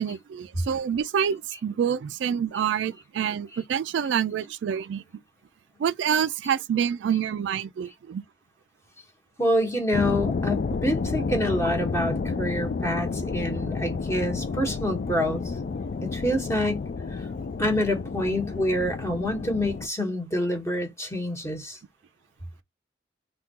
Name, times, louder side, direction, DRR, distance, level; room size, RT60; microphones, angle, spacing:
voice 1, 0.0-5.0 5.8-8.2, right 8 dB, 70° right, 0.3 m, -27 dB
voice 2, 9.4-15.5 16.0-17.3 17.6-21.8, left 1 dB, 15° left, 1.1 m, -27 dB
sound 1, 9.9-19.9, left 4 dB, 50° left, 0.3 m, -30 dB
3.6 x 2.2 x 2.8 m
head